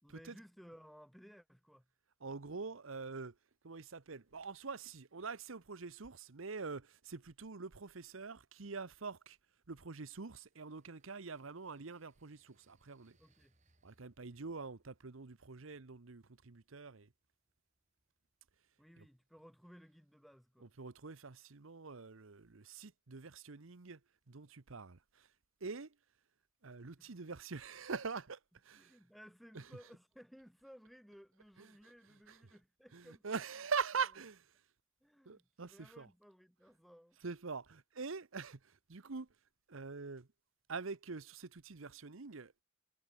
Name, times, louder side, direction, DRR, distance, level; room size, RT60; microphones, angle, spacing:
voice 1, 0.0-1.9 13.2-13.5 18.8-20.7 27.0-27.1 28.8-33.4 35.0-37.2, equal, ahead, 2.5 m, -59 dB
voice 2, 2.2-3.4 3.6-9.4 9.7-13.2 13.8-17.1 19.0-19.1 20.6-24.0 24.3-25.3 25.6-25.9 26.6-29.0 29.5-29.7 31.6-31.9 32.3-32.5 32.9-34.4 35.3-36.1 37.2-39.3 39.7-40.3 40.7-42.6, right 5 dB, 85° right, 1.0 m, -44 dB
sound 1, 9.2-19.7, right 2 dB, 35° right, 4.5 m, -79 dB
head